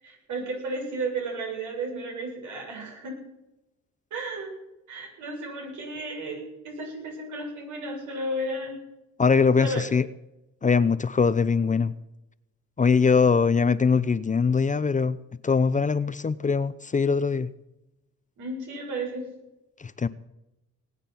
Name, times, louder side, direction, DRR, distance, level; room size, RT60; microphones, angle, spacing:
voice 1, 0.0-3.2 4.1-4.5 4.9-8.8 9.6-9.8 18.4-19.3, right 2 dB, 80° right, 0 dB, 7.4 m, -33 dB
voice 2, 9.2-10.0 10.6-11.9 12.8-15.2 15.4-17.5 19.8-20.1, left 5 dB, 25° left, 15 dB, 0.7 m, -22 dB
20.0 x 8.9 x 6.0 m, 0.92 s
cardioid pair, 90°, 30 cm